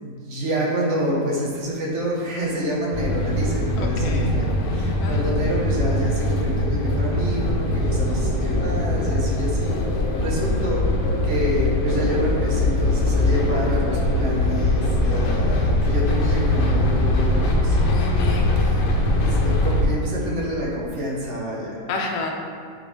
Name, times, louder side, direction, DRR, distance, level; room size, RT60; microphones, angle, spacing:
voice 1, 0.0-10.9 11.2-17.8 19.2-21.8, equal, 45° right, -4 dB, 1.4 m, -27 dB
sound 1, 2.9-19.8, left 1 dB, 85° left, 1.4 m, -21 dB
voice 2, 3.8-4.4 5.0-5.5 17.9-18.7 21.9-22.3, left 3 dB, 60° left, 0 dB, 1.1 m, -30 dB
8.7 x 4.2 x 3.2 m, 2.2 s
omnidirectional pair, 1.8 m